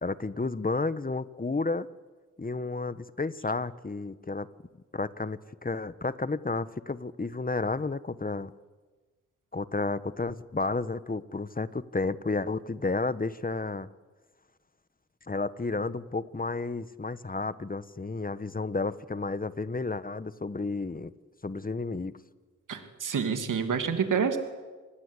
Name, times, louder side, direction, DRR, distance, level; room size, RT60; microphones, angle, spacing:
voice 1, 0.0-1.9 2.4-4.5 4.9-8.5 9.5-13.9 15.3-21.1 21.4-22.1, left 3 dB, 30° left, 15 dB, 1.3 m, -32 dB
voice 2, 22.7-24.4, right 6 dB, 85° right, 7 dB, 2.8 m, -28 dB
26.0 x 20.5 x 8.4 m, 1.3 s
cardioid pair, 55°, 31 cm